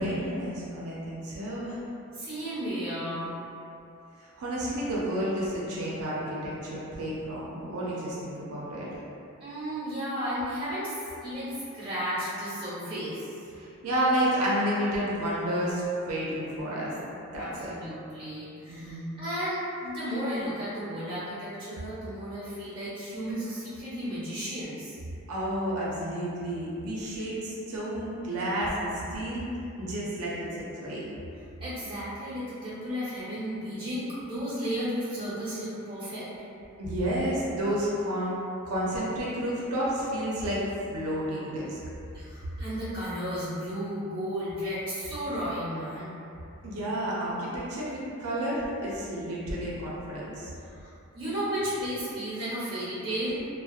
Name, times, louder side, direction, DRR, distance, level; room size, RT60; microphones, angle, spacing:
voice 1, 0.0-1.8 4.2-8.9 13.6-17.7 18.7-19.1 25.3-29.5 29.8-31.1 36.8-38.4 38.6-41.8 46.6-50.5, equal, 80° right, -6 dB, 0.5 m, -31 dB
voice 2, 2.2-3.3 9.4-13.3 17.3-25.0 31.6-36.3 42.1-46.1 50.6-53.4, equal, 25° right, -11 dB, 0.8 m, -34 dB
2.6 x 2.0 x 2.3 m, 2.7 s
head